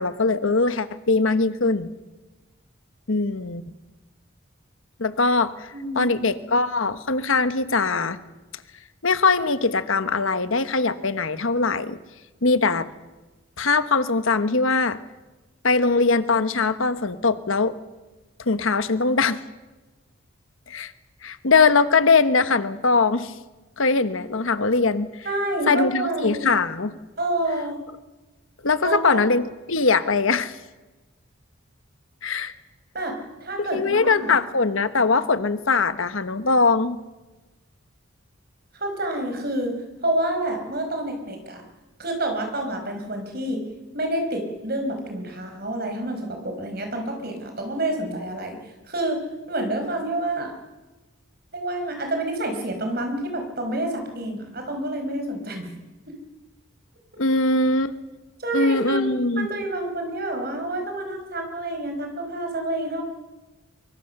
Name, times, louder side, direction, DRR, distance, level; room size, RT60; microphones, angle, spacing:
voice 1, 0.0-1.9 3.1-3.6 5.0-8.2 9.0-12.0 12.4-12.9 13.6-15.0 15.6-17.7 18.4-19.4 20.7-20.9 21.2-23.3 23.8-25.3 25.7-27.0 28.6-30.6 32.2-32.5 33.6-37.0 57.2-57.9 58.5-59.5, left 4 dB, 70° left, 12 dB, 1.2 m, -21 dB
voice 2, 5.7-6.2 25.2-26.5 27.2-27.8 28.8-29.2 32.9-34.3 38.7-39.7 40.0-41.6 42.0-43.6 43.9-48.6 48.9-49.2 49.5-50.5 51.5-55.7 56.1-56.2 58.4-59.0 59.3-63.0, right 1 dB, 45° right, 4 dB, 5.0 m, -28 dB
24.5 x 24.0 x 6.8 m, 1.1 s
head